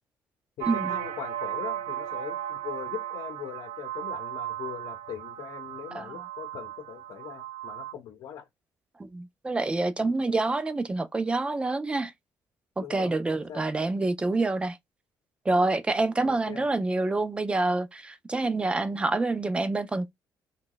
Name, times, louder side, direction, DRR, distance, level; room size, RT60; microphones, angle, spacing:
voice 1, 0.6-8.5 12.8-13.6 16.2-16.7, left 9 dB, 75° left, 0.7 m, -41 dB
sound 1, 0.6-7.9, right 12 dB, 80° right, 0.5 m, -35 dB
voice 2, 9.0-12.1 12.8-14.8 15.5-20.1, right 2 dB, 15° right, 0.4 m, -27 dB
3.0 x 2.3 x 3.8 m
cardioid pair, 140°, 7 cm